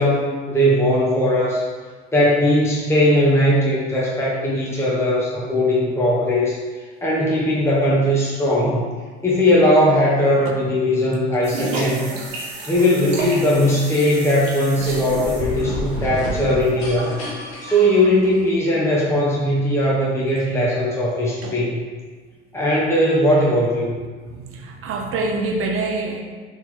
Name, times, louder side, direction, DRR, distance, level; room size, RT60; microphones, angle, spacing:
voice 1, 0.0-1.6 2.1-8.8 9.2-12.1 12.7-17.2 17.6-21.8 22.5-24.0, left 1 dB, 10° left, -6 dB, 0.8 m, -19 dB
sound 1, 11.4-17.3, right 2 dB, 85° right, 0.7 m, -31 dB
sound 2, 14.7-18.7, left 1 dB, 75° left, 0.8 m, -31 dB
voice 2, 24.3-26.2, right 3 dB, 45° right, 2 dB, 0.7 m, -26 dB
3.1 x 2.9 x 3.7 m, 1.5 s
hypercardioid pair, 65°, 29 cm